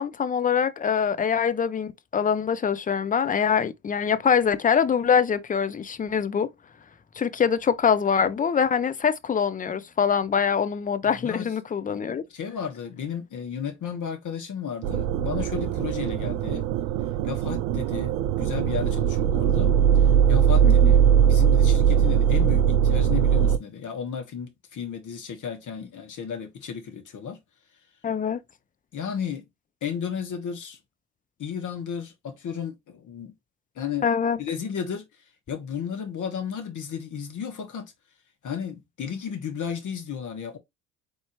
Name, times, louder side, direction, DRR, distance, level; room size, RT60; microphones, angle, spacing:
voice 1, 0.0-6.5 7.2-12.2 20.6-20.9 28.0-28.4 34.0-34.4, left 7 dB, 20° left, 0.5 m, -24 dB
voice 2, 12.3-16.7 17.3-18.1 18.4-19.8 20.3-21.0 21.2-27.4 28.9-29.5 29.8-30.8 31.4-33.3 33.8-34.1 34.4-35.1 35.5-37.9 38.4-40.6, left 7 dB, 45° left, 1.4 m, -33 dB
sound 1, 14.8-23.6, right 8 dB, 65° right, 0.5 m, -20 dB
4.1 x 3.4 x 3.0 m
hypercardioid pair, 55°, 44 cm